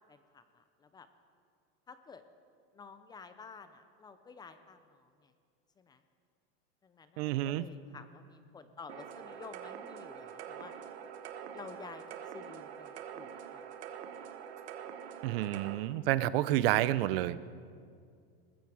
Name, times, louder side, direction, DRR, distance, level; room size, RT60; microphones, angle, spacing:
voice 1, 0.1-1.1 1.9-2.2 2.7-5.3 5.8-6.0 6.8-10.7 11.5-12.0 12.3-13.7, left 5 dB, 15° left, 10 dB, 0.4 m, -51 dB
voice 2, 7.2-7.6 15.2-17.4, right 14 dB, 65° right, 17 dB, 0.6 m, -29 dB
sound 1, 8.9-15.7, right 8 dB, 85° right, 1.3 m, -45 dB
20.0 x 14.5 x 4.8 m, 2.2 s
supercardioid pair, 160°, 31 cm